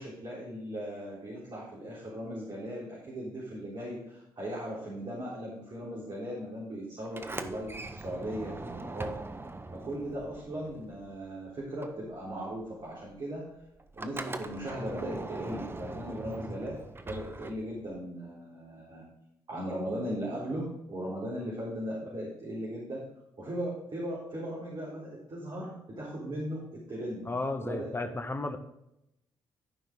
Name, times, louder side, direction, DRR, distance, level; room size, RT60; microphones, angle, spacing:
voice 1, 0.0-9.1 9.7-13.4 14.0-19.0 19.5-23.1 23.4-27.3 27.6-27.9 28.4-28.6, equal, 45° right, -5 dB, 3.7 m, -38 dB
Sliding door, 7.0-11.3 11.6-18.0, right 2 dB, 20° right, 0.9 m, -42 dB
voice 2, 27.3-28.6, left 2 dB, 20° left, 6 dB, 1.5 m, -33 dB
12.0 x 5.6 x 3.9 m, 0.84 s
hypercardioid pair, 45°, 11 cm